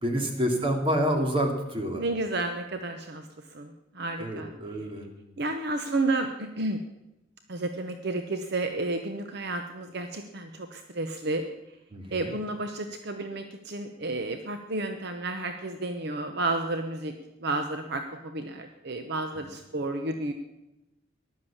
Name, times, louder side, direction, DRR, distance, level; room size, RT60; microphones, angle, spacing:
voice 1, 0.0-2.0 4.2-5.1 11.9-12.4 19.3-19.5, equal, 30° right, 3 dB, 2.6 m, -28 dB
voice 2, 1.9-4.5 5.4-6.8 7.5-11.4 12.1-17.1 17.4-20.3, right 2 dB, 55° right, 6 dB, 0.9 m, -31 dB
15.0 x 11.5 x 7.2 m, 0.94 s
head